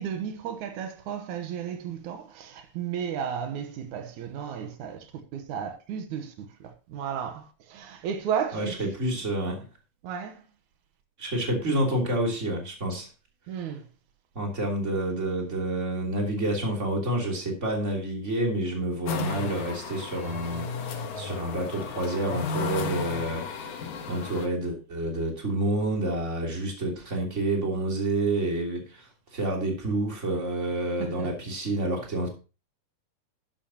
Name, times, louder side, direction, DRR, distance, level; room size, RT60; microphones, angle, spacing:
voice 1, 0.0-8.9 10.0-10.4 13.5-13.8 31.0-31.3, right 8 dB, 85° right, 2.6 m, -34 dB
voice 2, 8.5-9.6 11.2-13.1 14.3-23.8 24.1-32.3, right 1 dB, 25° right, 3.2 m, -29 dB
sound 1, 19.1-24.5, left 5 dB, 85° left, 2.9 m, -34 dB
11.5 x 11.0 x 2.9 m
omnidirectional pair, 3.3 m